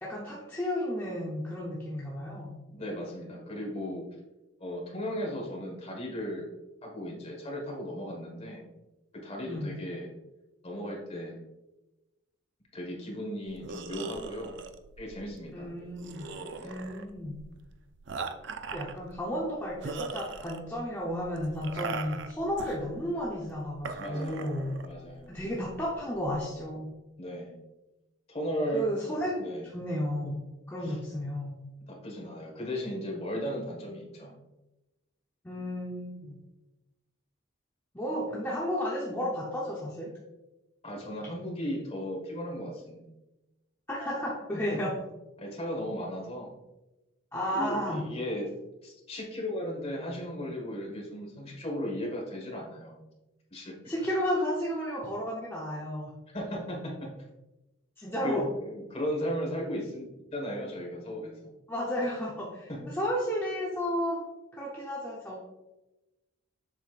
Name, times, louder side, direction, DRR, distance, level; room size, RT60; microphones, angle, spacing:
voice 1, 0.0-2.6 9.5-9.8 15.5-16.3 16.6-17.4 18.7-24.7 25.3-26.9 28.7-29.3 29.7-31.6 35.4-36.4 37.9-40.1 43.9-44.9 47.3-48.0 53.9-56.1 58.0-58.5 61.7-64.2 64.6-65.4, equal, 10° left, -5 dB, 0.8 m, -33 dB
voice 2, 2.7-4.0 4.6-6.5 6.8-8.6 9.2-10.1 10.6-11.4 12.7-14.5 15.0-15.7 16.6-16.8 24.0-24.6 24.8-25.3 27.2-27.5 28.3-28.9 29.4-29.6 30.8-30.9 31.9-34.4 40.8-43.0 44.7-44.8 45.4-46.5 47.5-48.5 48.8-53.0 53.5-53.7 56.3-57.1 58.2-61.3 62.7-62.8, equal, 30° left, -1 dB, 1.5 m, -36 dB
sound 1, 13.5-26.6, right 4 dB, 60° right, 0.4 m, -41 dB
7.2 x 5.6 x 2.5 m, 1.0 s
head